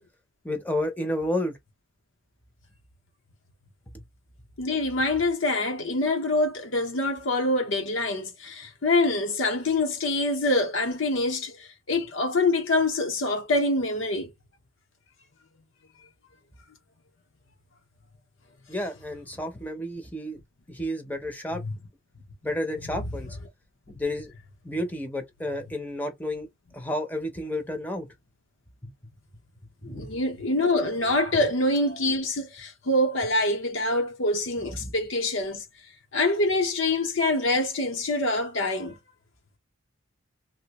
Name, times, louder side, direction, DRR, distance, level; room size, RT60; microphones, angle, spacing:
voice 1, 0.4-1.5 3.9-4.0 18.7-20.4 20.7-21.6 22.4-23.4 23.9-24.3 24.6-26.5 26.7-28.1 28.8-29.1 29.8-30.2 34.8-34.9, left 1 dB, 10° left, 0.6 m, -31 dB
voice 2, 4.6-14.3 29.8-35.6 36.1-39.0, left 2 dB, 75° left, 0.8 m, -25 dB
2.9 x 2.5 x 2.9 m
head